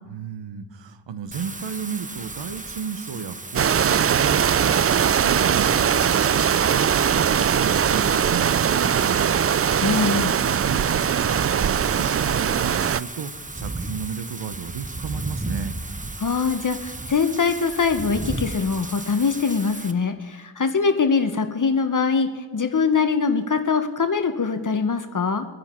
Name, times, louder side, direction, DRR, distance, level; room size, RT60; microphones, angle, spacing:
voice 1, 0.1-9.4 10.6-15.8, right 7 dB, 85° right, 12 dB, 0.9 m, -33 dB
Wind / Rain, 1.3-19.9, right 2 dB, 20° right, 0.9 m, -35 dB
sound 1, 3.5-13.0, right 8 dB, 35° right, 0.4 m, -21 dB
voice 2, 9.8-10.3 16.2-22.3 22.5-25.5, left 5 dB, 45° left, 8 dB, 1.0 m, -22 dB
22.5 x 10.0 x 4.4 m, 1.4 s
cardioid pair, 55°, 43 cm